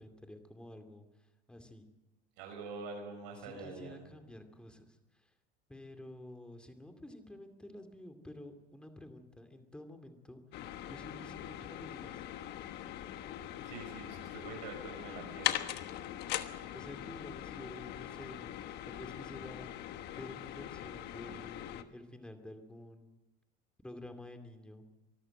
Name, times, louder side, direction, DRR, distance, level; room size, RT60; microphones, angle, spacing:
voice 1, 0.0-1.9 3.4-5.3 5.7-10.4 10.8-12.2 16.4-18.6 18.8-19.7 20.1-23.2 23.8-24.8, left 1 dB, 5° left, 6 dB, 2.4 m, -50 dB
voice 2, 2.4-4.0 13.6-15.7, right 4 dB, 80° right, 3 dB, 6.2 m, -45 dB
sound 1, 10.5-21.8, left 12 dB, 50° left, 1.3 m, -41 dB
24.0 x 13.5 x 7.8 m, 1.0 s
supercardioid pair, 135°, 21 cm